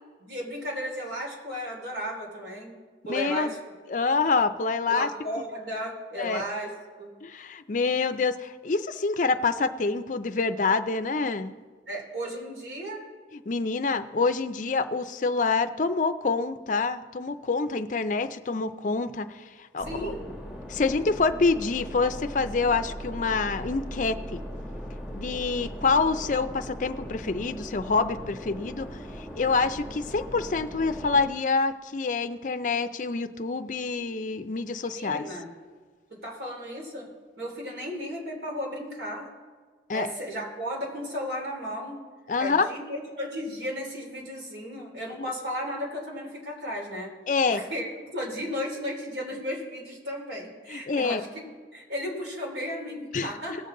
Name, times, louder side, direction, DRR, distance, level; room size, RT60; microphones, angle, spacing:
voice 1, 0.2-2.8 3.0-3.6 4.9-6.7 7.0-7.1 11.9-13.1 19.8-20.2 34.9-35.5 36.1-37.1 37.4-39.3 39.9-42.0 42.4-47.1 47.5-51.4 51.7-53.6, equal, 75° right, -1 dB, 3.2 m, -34 dB
voice 2, 3.1-3.5 3.9-5.1 6.2-6.4 7.2-11.5 13.3-19.4 19.7-20.1 20.7-24.4 25.1-28.9 29.2-35.3 39.9-40.1 42.3-42.7 45.2-45.3 47.3-47.6 50.7-51.2 53.1-53.3, left 4 dB, 45° left, 10 dB, 0.5 m, -26 dB
sound 1, 19.8-31.3, equal, 5° right, 1.1 m, -39 dB
18.5 x 6.8 x 3.8 m, 1.5 s
head